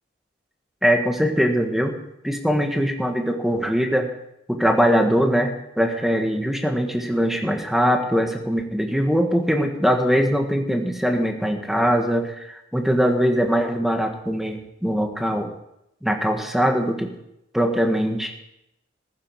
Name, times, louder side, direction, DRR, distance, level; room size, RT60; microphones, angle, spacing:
voice 1, 0.8-2.0 2.2-4.1 4.5-15.5 16.0-17.1 17.5-18.3, equal, ahead, 3 dB, 1.6 m, -21 dB
15.0 x 14.0 x 4.8 m, 0.82 s
head